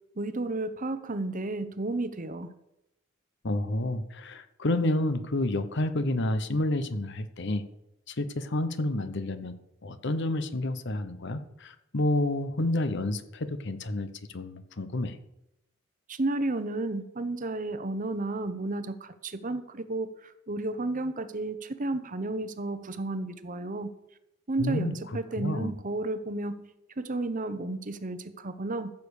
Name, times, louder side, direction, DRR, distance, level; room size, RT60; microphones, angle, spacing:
voice 1, 0.2-2.5 16.1-23.9 24.5-26.7 27.0-28.9, right 2 dB, 40° right, 11 dB, 0.9 m, -32 dB
voice 2, 3.4-7.7 8.1-9.6 9.8-15.2 24.6-25.7, left 1 dB, 60° left, 11 dB, 1.0 m, -29 dB
15.0 x 7.0 x 6.5 m, 0.85 s
head